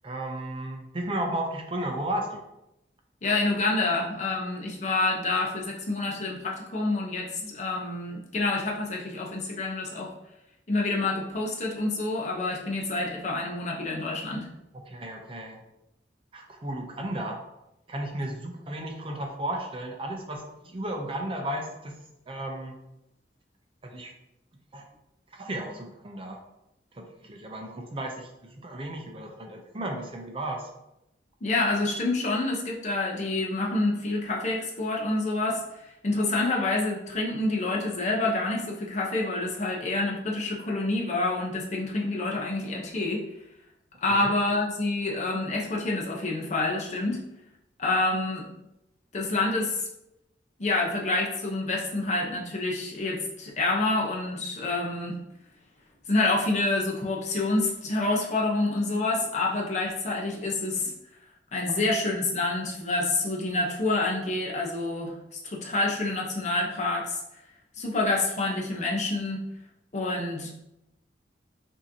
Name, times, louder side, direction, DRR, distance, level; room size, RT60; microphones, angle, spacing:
voice 1, 0.0-2.4 14.9-15.6 16.3-17.4 17.9-22.0 22.3-22.8 23.8-24.1 24.7-24.9 25.3-26.4 26.9-28.3 28.6-30.7 44.1-44.3, right 1 dB, 30° right, 2 dB, 0.5 m, -34 dB
voice 2, 3.2-10.1 10.7-14.5 31.4-43.2 44.0-47.2 47.8-48.5 49.1-49.9 50.6-55.2 56.1-60.9 61.5-67.2 67.7-69.4 69.9-70.5, left 2 dB, 40° left, -2 dB, 0.8 m, -27 dB
5.7 x 2.7 x 2.7 m, 0.87 s
head